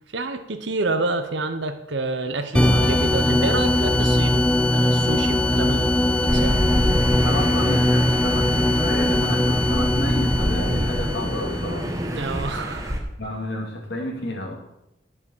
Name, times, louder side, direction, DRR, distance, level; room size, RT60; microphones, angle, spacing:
voice 1, 0.1-4.4 4.7-6.7 12.1-13.0, right 3 dB, 60° right, 7 dB, 0.9 m, -28 dB
sound 1, 2.5-11.9, left 1 dB, 5° left, 0.6 m, -21 dB
Wind instrument woodwind instrument, 4.7-9.4, equal, 20° left, 2.1 m, -38 dB
sound 2, 6.3-13.0, equal, 15° right, 1.4 m, -26 dB
voice 2, 7.2-11.9 13.2-14.6, left 1 dB, 55° left, 1 dB, 2.6 m, -31 dB
11.0 x 7.1 x 7.3 m, 0.85 s
head